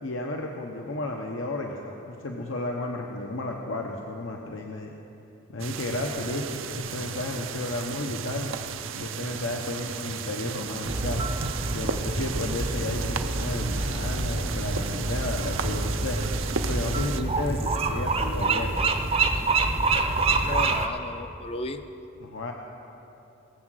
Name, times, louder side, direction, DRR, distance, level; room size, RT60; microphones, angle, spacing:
voice 1, 0.0-5.0 5.5-8.5 8.9-11.3 11.7-16.2 16.7-18.8 22.2-22.5, left 2 dB, 70° left, 1 dB, 0.9 m, -33 dB
sound 1, 5.6-17.2, right 5 dB, 70° right, 0.6 m, -34 dB
sound 2, 10.8-20.9, right 3 dB, 30° right, 0.7 m, -27 dB
voice 2, 20.4-21.8, left 2 dB, 30° left, 9 dB, 0.5 m, -34 dB
20.5 x 7.5 x 6.3 m, 3.0 s
head